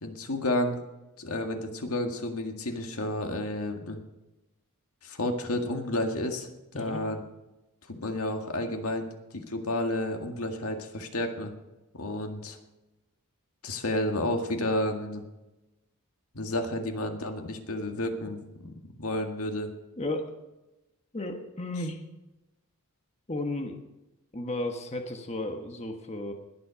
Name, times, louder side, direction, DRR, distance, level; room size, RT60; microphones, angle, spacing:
voice 1, 0.0-0.8 1.2-4.0 5.0-6.5 6.7-7.2 7.9-9.1 9.3-11.5 11.9-12.6 13.6-15.2 16.3-18.7 19.0-19.7, left 1 dB, 75° left, 4 dB, 1.9 m, -31 dB
voice 2, 20.0-20.3 21.1-22.0 23.3-23.8 24.3-26.3, left 2 dB, 30° left, 4 dB, 1.3 m, -33 dB
20.5 x 7.7 x 5.7 m, 1.0 s
head